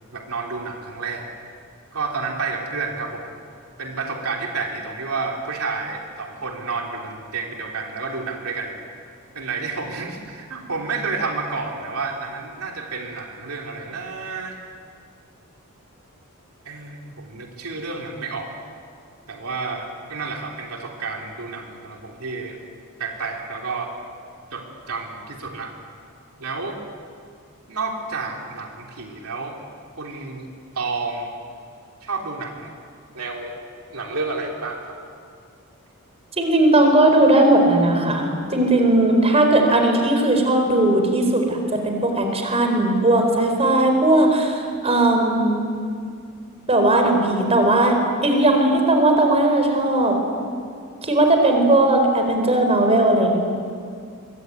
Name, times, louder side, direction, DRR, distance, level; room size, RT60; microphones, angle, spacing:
voice 1, 0.1-1.3 1.9-3.3 3.8-8.8 9.3-14.6 16.6-18.5 19.3-22.6 23.0-23.9 24.5-25.7 26.4-26.8 27.7-29.6 30.0-30.5 30.7-31.3 32.0-32.7 33.1-33.6 33.9-35.1, right 4 dB, 70° right, 0 dB, 3.1 m, -30 dB
voice 2, 36.4-41.6 41.8-45.6 46.7-50.1 51.0-53.4, right 1 dB, 30° right, 4 dB, 4.5 m, -18 dB
24.5 x 23.5 x 9.4 m, 2.3 s
head